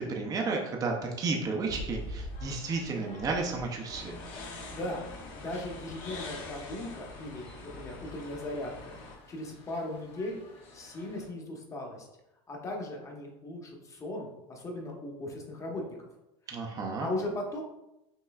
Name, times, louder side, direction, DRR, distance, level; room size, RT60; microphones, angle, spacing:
voice 1, 0.0-4.1 16.5-17.1, right 4 dB, 25° right, 1 dB, 0.5 m, -32 dB
sound 1, 1.6-11.3, left 1 dB, 40° left, 1.3 m, -47 dB
sound 2, 3.9-9.2, left 2 dB, 55° left, 1.4 m, -44 dB
voice 2, 4.7-5.1 5.3-9.0 9.3-10.4 10.7-12.1 12.5-15.9 17.0-17.6, left 1 dB, 20° left, 0 dB, 0.9 m, -37 dB
5.5 x 3.1 x 2.3 m, 0.91 s
supercardioid pair, 135°, 15 cm